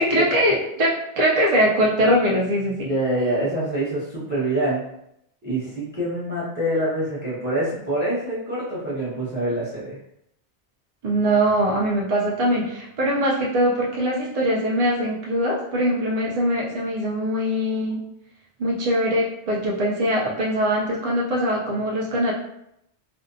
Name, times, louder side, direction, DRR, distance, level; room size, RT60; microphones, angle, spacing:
voice 1, 0.0-2.9 11.0-18.0 18.6-22.3, equal, 60° right, -3 dB, 0.4 m, -22 dB
voice 2, 2.8-4.8 5.4-10.0, right 1 dB, 10° right, -8 dB, 0.8 m, -25 dB
2.6 x 2.1 x 2.6 m, 0.78 s
omnidirectional pair, 1.2 m